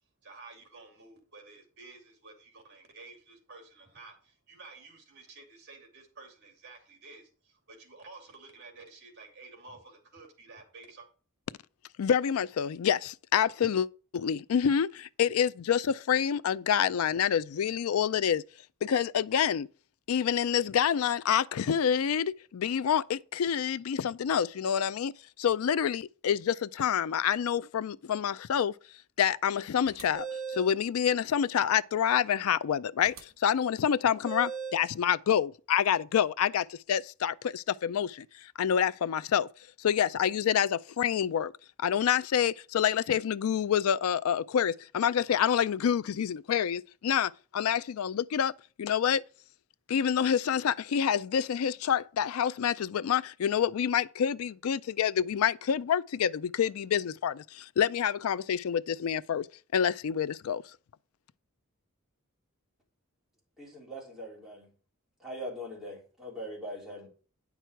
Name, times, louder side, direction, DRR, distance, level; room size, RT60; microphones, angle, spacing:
voice 1, 0.2-11.1, right 3 dB, 55° right, 2.6 m, -51 dB
voice 2, 12.0-13.9 14.1-18.4 18.8-19.7 20.1-25.1 25.4-28.7 29.2-39.5 39.8-41.5 41.8-48.5 48.8-49.2 49.9-59.5 59.7-60.6, left 8 dB, 85° left, 0.4 m, -27 dB
sound 1, 29.9-30.7 33.0-33.2 34.2-34.9, right 6 dB, 80° right, 1.6 m, -38 dB
voice 3, 63.6-64.7 65.2-67.1, equal, ahead, 3.4 m, -41 dB
9.1 x 6.1 x 4.5 m
head